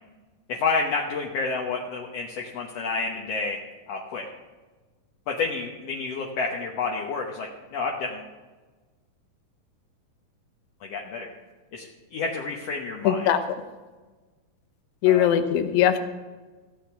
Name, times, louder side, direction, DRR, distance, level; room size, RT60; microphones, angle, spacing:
voice 1, 0.5-3.6 3.9-4.3 5.3-8.3 10.8-11.3 11.7-13.3 15.1-15.3, left 4 dB, 65° left, 0 dB, 1.7 m, -29 dB
voice 2, 13.0-13.4 15.0-16.0, left 10 dB, 85° left, 9 dB, 2.7 m, -20 dB
15.0 x 8.3 x 5.8 m, 1.3 s
omnidirectional pair, 4.0 m